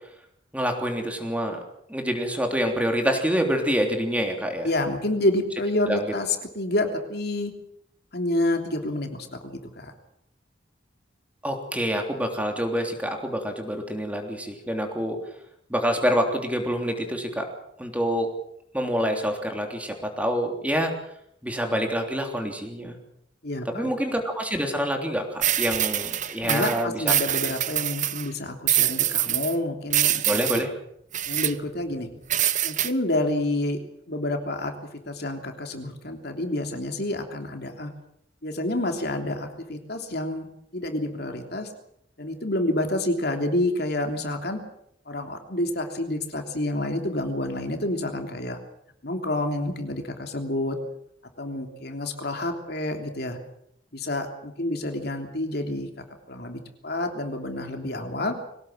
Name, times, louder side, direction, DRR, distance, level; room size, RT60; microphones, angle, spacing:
voice 1, 0.5-1.6 1.9-4.7 5.9-6.1 11.4-15.2 15.7-17.5 17.8-18.3 18.7-20.9 21.4-23.0 23.6-27.1 30.3-30.7, equal, 5° right, 3 dB, 3.3 m, -26 dB
voice 2, 4.6-7.5 8.1-9.9 23.4-23.9 26.4-30.6 31.3-32.1 32.6-33.8 34.1-37.9 38.4-40.5 40.7-41.7 42.2-44.6 45.0-48.6 49.0-50.8 51.4-53.4 53.9-55.9 56.3-58.4, left 1 dB, 55° left, 4 dB, 3.2 m, -28 dB
sound 1, 25.4-28.3 28.7-29.6 29.9-30.6 31.1-31.5 32.3-32.9, right 12 dB, 40° right, 1.0 m, -24 dB
23.5 x 18.0 x 7.6 m, 0.74 s
head